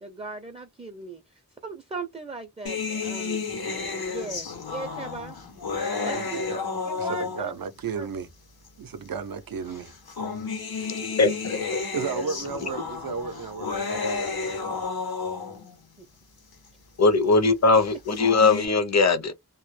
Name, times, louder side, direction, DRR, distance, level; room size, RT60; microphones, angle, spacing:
voice 1, 0.0-3.5 4.1-5.4 6.0-6.4 6.9-7.6 8.0-8.1 12.1-12.2 16.0-16.1, right 3 dB, 15° right, 0.4 m, -38 dB
sound 1, 2.7-7.7 8.7-8.8 9.9-15.8 17.9-18.7, left 4 dB, 90° left, 0.8 m, -31 dB
voice 2, 6.0-6.7 7.0-8.3 8.8-9.9 10.8-10.9 11.9-14.6, right 5 dB, 70° right, 0.5 m, -34 dB
voice 3, 10.9-11.8 17.0-19.3, left 3 dB, 50° left, 0.5 m, -21 dB
2.1 x 2.0 x 3.1 m
wide cardioid pair, 50°, 36 cm